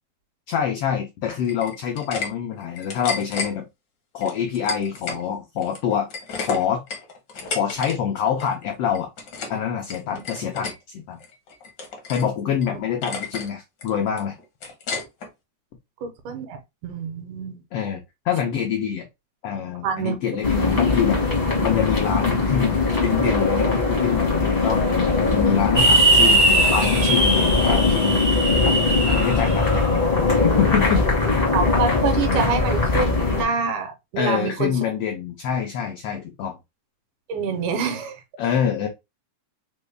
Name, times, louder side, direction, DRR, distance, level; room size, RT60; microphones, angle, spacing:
voice 1, 0.5-3.7 4.1-6.1 6.4-6.8 7.5-9.1 9.5-11.2 12.1-14.4 17.7-19.1 19.4-21.2 21.6-28.6 29.1-29.8 30.4-31.0 34.2-36.6 38.4-38.9, left 8 dB, 85° left, 1.3 m, -26 dB
sound 1, 1.4-2.3 2.6-3.5 4.2-5.2 5.6-7.9 8.2-8.5 8.9-9.6 9.9-10.7 11.2-12.3 12.6-12.7 13.0-13.5 13.8-15.3, left 4 dB, 65° left, 1.0 m, -32 dB
voice 2, 16.0-16.6 16.8-17.6 19.8-20.4 31.5-34.7 37.3-38.2, right 6 dB, 85° right, 2.4 m, -26 dB
sound 2, 20.4-33.4, left 3 dB, 40° left, 0.5 m, -21 dB
sound 3, 25.8-29.9, right 2 dB, 45° right, 0.5 m, -20 dB
5.2 x 2.2 x 3.3 m
omnidirectional pair, 3.5 m